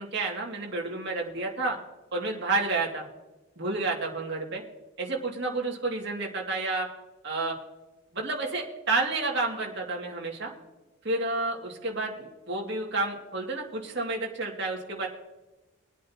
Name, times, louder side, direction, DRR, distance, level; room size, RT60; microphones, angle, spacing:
voice 1, 0.0-1.8 2.1-3.1 3.6-4.6 5.0-6.9 7.2-7.5 8.1-10.5 11.0-15.1, right 3 dB, 50° right, -1 dB, 2.4 m, -30 dB
23.0 x 8.4 x 2.9 m, 1.1 s
head